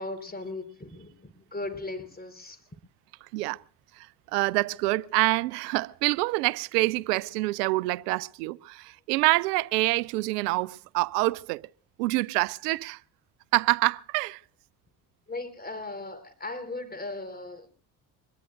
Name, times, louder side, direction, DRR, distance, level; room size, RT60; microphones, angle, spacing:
voice 1, 0.0-2.6 15.3-17.7, left 2 dB, 20° left, 4.6 m, -37 dB
voice 2, 4.3-11.6 12.0-13.0 13.5-14.4, right 21 dB, 80° right, 0.7 m, -26 dB
25.0 x 21.5 x 2.7 m
hypercardioid pair, 50°, 48 cm